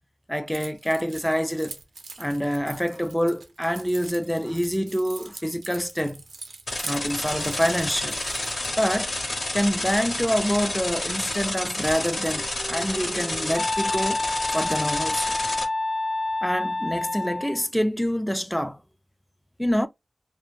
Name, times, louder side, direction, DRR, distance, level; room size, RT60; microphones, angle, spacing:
voice 1, 0.3-1.8 2.2-6.2 6.8-8.2 8.8-9.1 9.5-14.2 14.5-15.4 16.4-18.8 19.6-19.9, equal, 5° left, 0.3 m, -26 dB
Keys jangling, 0.5-8.7, right 4 dB, 90° right, 0.5 m, -43 dB
sound 1, 6.7-15.6, left 2 dB, 70° left, 0.9 m, -30 dB
Wind instrument woodwind instrument, 12.2-17.6, left 2 dB, 45° left, 0.6 m, -29 dB
2.1 x 2.1 x 3.0 m
wide cardioid pair, 80°, 0 cm